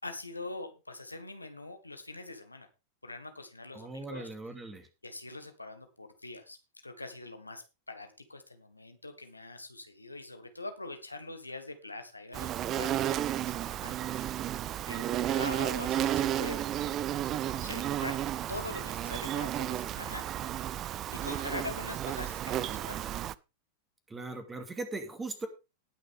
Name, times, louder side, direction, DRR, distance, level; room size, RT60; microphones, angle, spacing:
voice 1, 0.0-2.7 3.0-4.3 5.0-6.6 6.8-14.3 14.8-16.6 17.4-18.2 18.5-23.1, left 2 dB, 85° left, 7 dB, 1.5 m, -43 dB
voice 2, 3.7-4.9 24.1-25.5, right 2 dB, 15° right, 7 dB, 2.5 m, -39 dB
Insect, 12.3-23.3, right 12 dB, 30° right, 0.5 m, -32 dB
19.0 x 6.5 x 3.6 m, 0.29 s
figure-of-eight pair, 90°, 0 cm